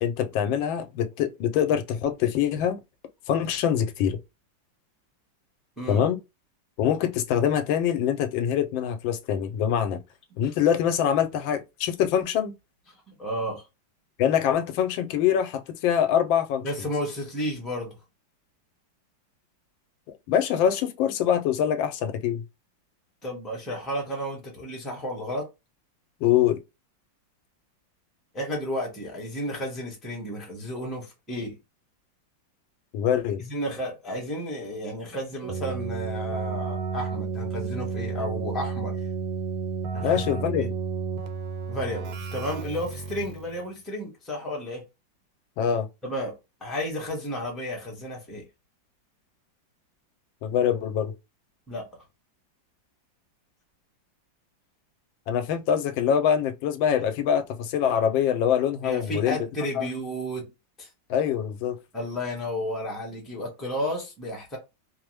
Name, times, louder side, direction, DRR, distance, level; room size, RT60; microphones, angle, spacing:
voice 1, 0.0-2.8 3.3-4.2 5.9-6.2 6.8-10.0 10.4-12.5 14.2-16.7 20.3-22.4 26.2-26.6 32.9-33.4 40.0-40.7 45.6-45.9 50.4-51.1 55.3-59.4 59.8-59.9 61.1-61.8, left 9 dB, 85° left, 1.3 m, -24 dB
voice 2, 5.8-6.1 13.1-13.7 16.6-18.0 23.2-25.5 28.3-31.6 33.4-39.1 39.9-40.7 41.7-44.9 46.0-48.4 51.7-51.9 58.8-60.5 60.8-60.9 61.9-64.6, equal, ahead, 0.7 m, -32 dB
Keyboard (musical), 35.4-43.5, right 5 dB, 90° right, 1.4 m, -32 dB
3.1 x 2.0 x 3.1 m
omnidirectional pair, 2.1 m